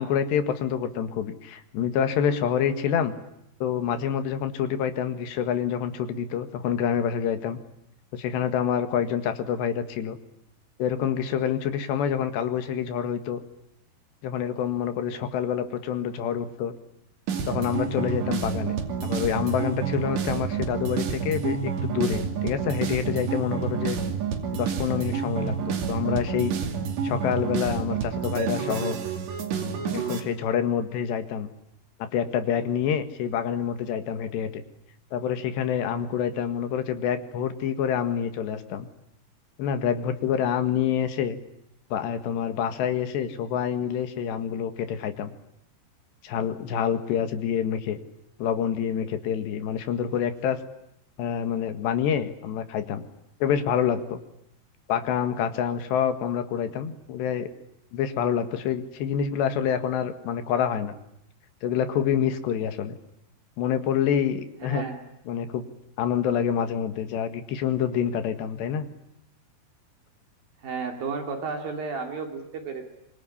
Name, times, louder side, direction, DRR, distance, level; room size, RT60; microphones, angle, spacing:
voice 1, 0.0-3.1 3.6-7.6 8.1-10.2 10.8-13.4 14.2-16.7 17.5-18.8 19.0-24.0 24.5-26.5 27.0-29.0 29.9-31.5 32.0-34.6 35.1-38.9 39.6-41.4 41.9-45.3 46.2-48.0 48.4-50.6 51.2-53.0 53.4-54.2 54.9-57.5 57.9-61.0 61.6-63.0 63.6-64.9 65.3-65.7 66.0-68.9, left 8 dB, 85° left, 9 dB, 4.0 m, -27 dB
sound 1, 17.3-30.2, right 6 dB, 90° right, 4.8 m, -29 dB
voice 2, 64.6-65.0 70.6-72.9, right 5 dB, 60° right, 4 dB, 4.3 m, -33 dB
25.0 x 24.0 x 10.0 m, 0.80 s
omnidirectional pair, 4.8 m